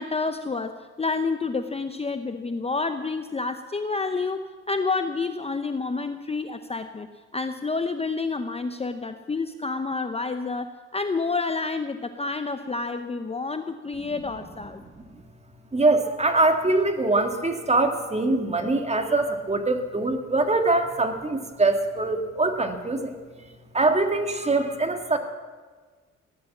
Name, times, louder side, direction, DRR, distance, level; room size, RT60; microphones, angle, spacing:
voice 1, 0.0-7.1 7.3-14.8, left 4 dB, 20° left, 8 dB, 0.8 m, -29 dB
voice 2, 15.7-23.1 23.7-25.2, right 2 dB, 20° right, 6 dB, 2.0 m, -23 dB
16.5 x 11.0 x 7.3 m, 1.4 s
cardioid pair, 90°, 30 cm